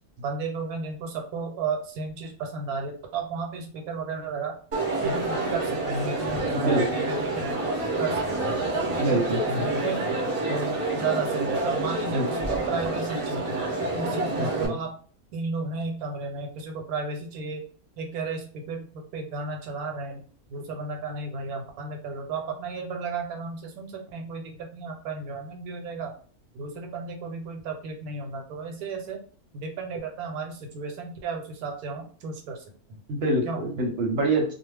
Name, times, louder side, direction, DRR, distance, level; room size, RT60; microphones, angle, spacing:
voice 1, 0.2-4.6 5.0-8.6 9.5-10.1 10.5-13.6 14.0-14.9 15.3-17.7 18.0-26.1 26.5-29.2 29.5-33.0 33.4-33.6, right 4 dB, 80° right, 3 dB, 1.1 m, -33 dB
Crowd, 4.7-14.7, right 2 dB, 40° right, 0.5 m, -28 dB
voice 2, 6.5-6.9 9.0-9.8 12.1-12.3 14.4-14.7 33.1-34.5, right 1 dB, 60° right, 1 dB, 0.9 m, -26 dB
2.4 x 2.1 x 3.3 m, 0.42 s
omnidirectional pair, 1.6 m